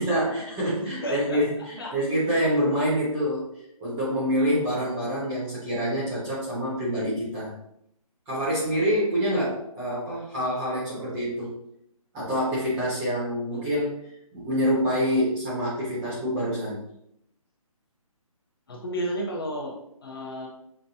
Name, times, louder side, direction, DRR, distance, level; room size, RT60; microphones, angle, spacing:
voice 1, 0.0-3.5 3.8-7.6 8.3-11.5 12.1-13.9 14.3-16.8, equal, 10° right, -8 dB, 0.8 m, -26 dB
voice 2, 0.8-1.4 1.8-1.9 13.5-13.7 18.7-20.5, equal, 40° left, -1 dB, 0.7 m, -32 dB
5.8 x 2.2 x 2.7 m, 0.75 s
hypercardioid pair, 165°, 19 cm